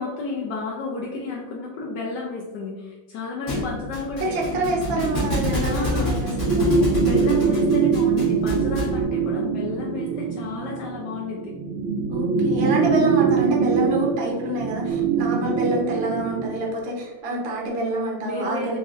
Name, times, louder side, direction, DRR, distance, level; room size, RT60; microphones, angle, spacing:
voice 1, 0.0-5.0 5.7-6.2 7.0-11.5 18.2-18.8, left 3 dB, 75° left, -1 dB, 1.1 m, -32 dB
Thump thud, 3.5-9.0, left 1 dB, 50° left, 1.9 m, -28 dB
sound 1, 4.2-16.6, right 5 dB, 85° right, 1.4 m, -23 dB
voice 2, 4.3-6.8 12.1-18.8, right 1 dB, 60° right, -2 dB, 0.6 m, -27 dB
4.7 x 2.6 x 2.4 m, 1.2 s
omnidirectional pair, 2.2 m